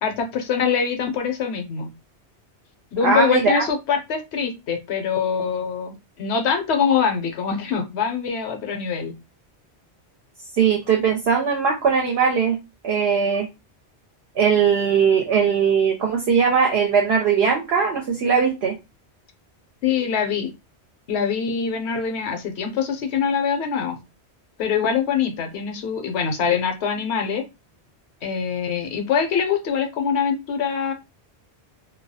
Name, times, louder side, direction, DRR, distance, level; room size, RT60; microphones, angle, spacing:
voice 1, 0.0-1.9 2.9-9.1 19.8-20.5 21.1-24.0 24.6-27.4 28.2-30.9, left 6 dB, 75° left, 0.9 m, -24 dB
voice 2, 3.0-3.7 10.6-12.6 12.8-13.5 14.4-18.8, right 6 dB, 70° right, 0.8 m, -19 dB
2.3 x 2.0 x 2.7 m
omnidirectional pair, 1.1 m